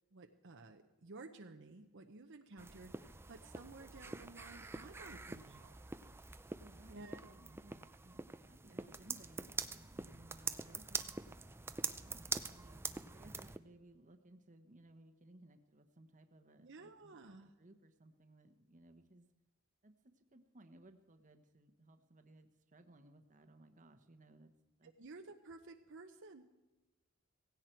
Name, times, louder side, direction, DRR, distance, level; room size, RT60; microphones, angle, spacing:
voice 1, 0.1-5.7 6.9-7.3 16.6-17.5 24.8-26.5, right 3 dB, 60° right, 5 dB, 0.9 m, -54 dB
sound 1, 2.6-13.6, right 4 dB, 10° right, 0.4 m, -45 dB
voice 2, 6.6-7.0 7.3-11.3 11.9-19.3 19.8-24.5 24.8-24.9, right 1 dB, 35° right, 7 dB, 1.1 m, -62 dB
17.0 x 16.5 x 4.6 m, 1.1 s
head